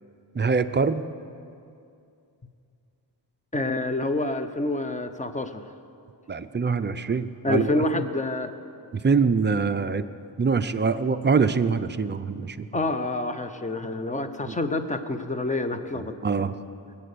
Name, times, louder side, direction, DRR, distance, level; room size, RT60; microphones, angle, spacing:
voice 1, 0.3-1.0 6.3-7.8 8.9-10.1 10.4-12.7 14.5-14.6 15.9-16.6, right 5 dB, 25° right, 10 dB, 0.5 m, -24 dB
voice 2, 3.5-5.6 7.4-8.5 12.7-16.2, left 2 dB, 15° left, 9 dB, 0.8 m, -27 dB
22.0 x 8.6 x 6.8 m, 2.5 s
wide cardioid pair, 130°, 46 cm